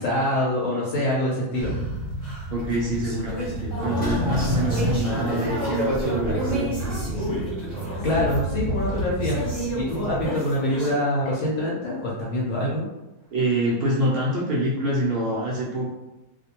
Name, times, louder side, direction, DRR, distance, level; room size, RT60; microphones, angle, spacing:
voice 1, 0.0-1.7 8.0-9.4 9.7-12.8, left 1 dB, 70° left, -5 dB, 1.0 m, -25 dB
sound 1, 1.6-10.3, right 1 dB, 85° left, 1.1 m, -32 dB
sound 2, 1.6-10.9, equal, 20° right, 0.8 m, -31 dB
voice 2, 2.5-7.3 13.3-15.9, right 1 dB, 75° right, -5 dB, 0.5 m, -26 dB
sound 3, 3.7-6.6 6.8-6.9, right 1 dB, 10° left, 0.6 m, -29 dB
2.4 x 2.1 x 2.8 m, 1.0 s
omnidirectional pair, 1.5 m